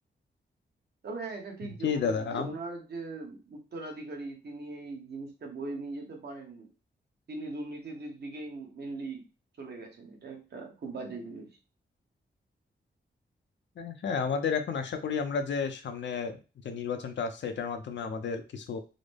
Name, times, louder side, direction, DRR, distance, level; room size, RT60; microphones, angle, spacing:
voice 1, 1.0-6.7 7.3-9.3 9.6-11.5, right 3 dB, 65° right, 1 dB, 1.1 m, -40 dB
voice 2, 1.6-2.5 13.8-16.4 16.6-18.8, left 6 dB, 85° left, 6 dB, 0.6 m, -32 dB
3.8 x 2.1 x 3.3 m, 0.32 s
wide cardioid pair, 165°, 18 cm